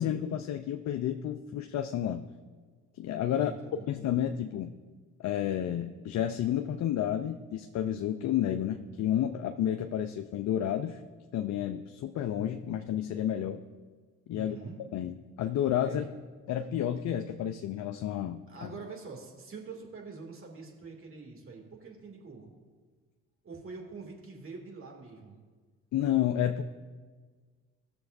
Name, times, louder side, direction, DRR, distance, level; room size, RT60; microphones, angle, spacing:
voice 1, 0.0-2.3 2.9-3.5 3.9-4.7 5.2-11.0 11.3-13.6 14.3-14.6 14.9-16.0 16.5-18.7 25.9-26.6, left 10 dB, 55° left, 7 dB, 0.6 m, -31 dB
voice 2, 3.3-3.9 14.3-14.8 15.8-16.1 18.5-22.5 23.4-25.4, right 4 dB, 40° right, 1 dB, 2.5 m, -45 dB
17.0 x 6.8 x 2.6 m, 1.5 s
hypercardioid pair, 55°, 34 cm